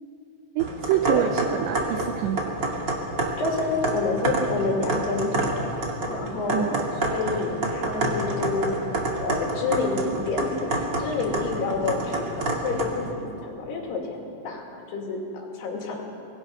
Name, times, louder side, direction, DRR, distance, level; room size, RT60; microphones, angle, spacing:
sound 1, 0.6-13.1, right 2 dB, 75° right, 1.0 m, -28 dB
voice 1, 0.6-2.5 6.5-6.8, right 11 dB, 90° right, 8 dB, 2.5 m, -26 dB
voice 2, 3.4-5.5 6.1-6.7 7.0-8.7 9.2-14.2 14.4-16.1, left 3 dB, 60° left, 0 dB, 4.0 m, -28 dB
24.5 x 19.5 x 5.7 m, 2.7 s
omnidirectional pair, 5.9 m